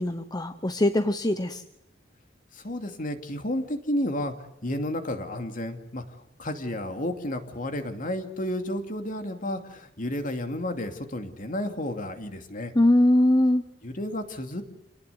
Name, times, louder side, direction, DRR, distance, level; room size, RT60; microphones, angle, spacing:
voice 1, 0.0-1.6 12.7-13.6, left 1 dB, 20° left, 9 dB, 1.0 m, -21 dB
voice 2, 2.5-6.0 6.4-12.7 13.8-14.6, left 1 dB, 45° left, 6 dB, 2.7 m, -32 dB
28.0 x 19.0 x 8.1 m, 0.85 s
head